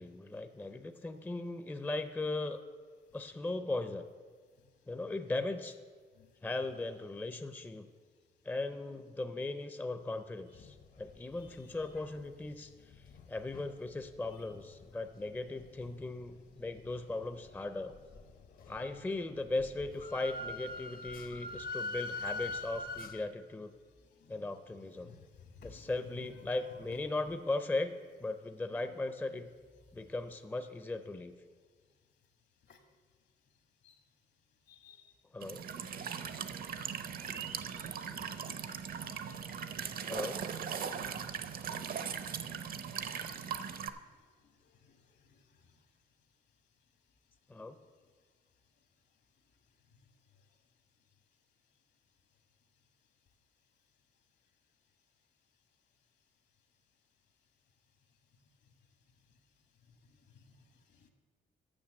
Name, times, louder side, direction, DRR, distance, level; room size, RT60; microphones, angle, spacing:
voice 1, 0.0-2.6 3.1-4.1 4.9-5.8 6.4-7.9 8.4-12.7 13.3-18.0 18.7-23.7 24.3-25.2 25.6-27.9 28.2-29.5 29.9-31.3 35.3-35.6 40.1-40.4 47.5-47.8, left 2 dB, 10° left, 9 dB, 0.5 m, -38 dB
sound 1, 10.5-13.8 14.3-15.1 15.5-19.3 19.5-23.3, left 2 dB, 55° left, 0.8 m, -43 dB
voice 2, 25.0-25.9 32.7-32.8 33.8-33.9 34.7-35.1 36.1-36.3 44.8-45.0 45.3-45.4 60.3-60.5 60.9-61.1, left 5 dB, 70° left, 6 dB, 1.4 m, -57 dB
Walk footsteps / Chirp tweet / Stream, 35.4-43.9, right 7 dB, 55° right, 0.6 m, -39 dB
8.7 x 6.5 x 7.5 m, 1.5 s
cardioid pair, 115°, 18 cm